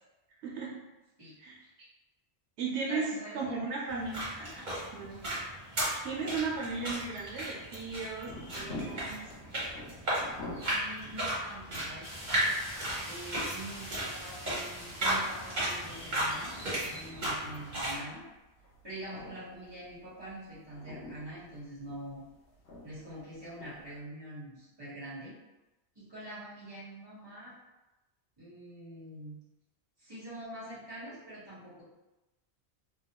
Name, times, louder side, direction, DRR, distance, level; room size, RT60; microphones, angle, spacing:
voice 1, 0.4-0.8 1.4-1.9 2.6-4.2 4.9-5.2 6.0-9.3, right 4 dB, 85° right, -3 dB, 0.9 m, -36 dB
voice 2, 2.9-3.6 4.4-4.6 10.7-12.1 13.0-16.6 16.8-18.2 18.8-22.2 22.8-25.3 25.9-27.5 28.4-29.4 30.0-31.8, right 1 dB, 25° right, -10 dB, 1.3 m, -45 dB
sound 1, 3.9-18.0, right 1 dB, 45° right, 1.3 m, -35 dB
sound 2, 7.8-24.0, left 2 dB, 75° left, 0.9 m, -49 dB
sound 3, 12.0-17.1, equal, 20° left, 1.2 m, -46 dB
3.0 x 2.3 x 2.8 m, 1.0 s
omnidirectional pair, 1.1 m